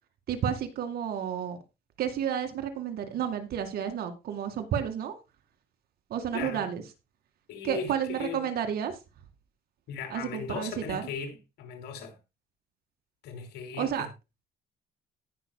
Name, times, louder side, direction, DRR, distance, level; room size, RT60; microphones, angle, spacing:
voice 1, 0.3-1.6 2.0-5.2 6.1-6.8 7.6-9.0 10.1-11.0 13.8-14.1, right 9 dB, 65° right, 2.2 m, -31 dB
voice 2, 6.3-6.7 7.5-8.4 9.9-12.2 13.2-14.1, left 6 dB, 75° left, 3.3 m, -38 dB
18.5 x 6.2 x 2.2 m
cardioid pair, 110°, 17 cm